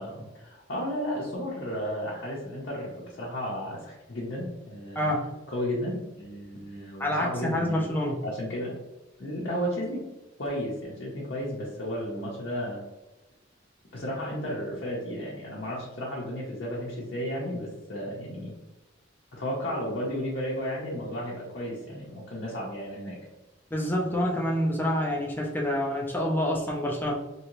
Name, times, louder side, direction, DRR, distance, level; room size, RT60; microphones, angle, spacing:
voice 1, 0.0-5.1 5.5-7.8 8.2-8.7 9.2-10.0 10.4-12.8 13.9-18.5 19.3-23.2, equal, 55° left, -5 dB, 0.7 m, -33 dB
voice 2, 7.0-8.2 23.7-27.1, left 1 dB, 10° left, -2 dB, 0.5 m, -27 dB
3.0 x 2.7 x 3.0 m, 1.0 s
head